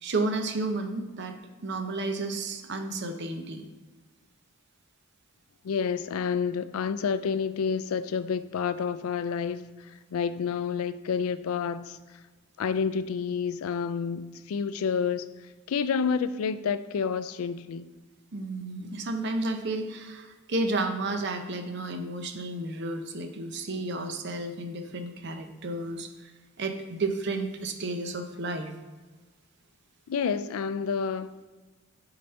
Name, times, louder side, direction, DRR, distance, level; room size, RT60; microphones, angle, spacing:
voice 1, 0.0-1.4 1.6-3.6 18.3-26.3 26.6-28.7, right 2 dB, 55° right, 0.6 m, -32 dB
voice 2, 5.6-9.6 10.1-12.0 12.6-15.3 15.7-17.9 30.1-31.4, left 6 dB, 85° left, 0.4 m, -29 dB
6.7 x 4.0 x 4.4 m
head